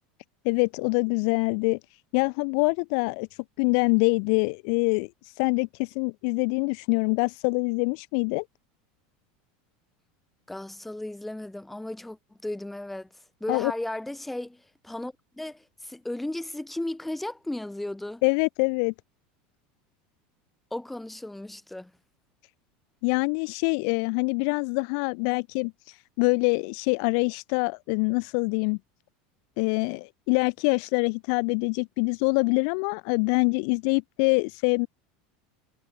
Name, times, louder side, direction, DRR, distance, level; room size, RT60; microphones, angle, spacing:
voice 1, 0.4-1.8 2.1-3.3 3.6-5.1 5.4-8.4 13.5-13.7 18.2-18.9 23.0-28.8 29.6-34.9, left 40 dB or more, 50° left, 1.4 m, -25 dB
voice 2, 10.5-18.2 20.7-21.9, left 1 dB, 5° left, 4.6 m, -35 dB
supercardioid pair, 170°, 4 cm